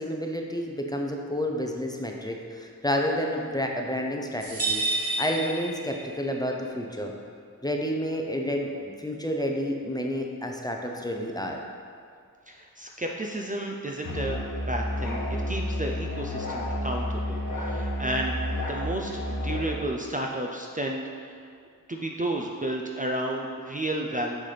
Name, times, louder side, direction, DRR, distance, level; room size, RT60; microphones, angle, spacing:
voice 1, 0.0-7.2 7.6-11.6, equal, 10° left, 1 dB, 0.7 m, -30 dB
sound 1, 4.4-6.3, right 2 dB, 45° right, 1.6 m, -30 dB
voice 2, 12.5-14.4 14.7-18.4 18.7-21.3 21.9-24.4, right 1 dB, 25° right, 0 dB, 0.5 m, -32 dB
Musical instrument, 14.0-19.7, left 1 dB, 65° left, 1.1 m, -30 dB
6.2 x 5.8 x 3.3 m, 2.2 s
cardioid pair, 40°, 34 cm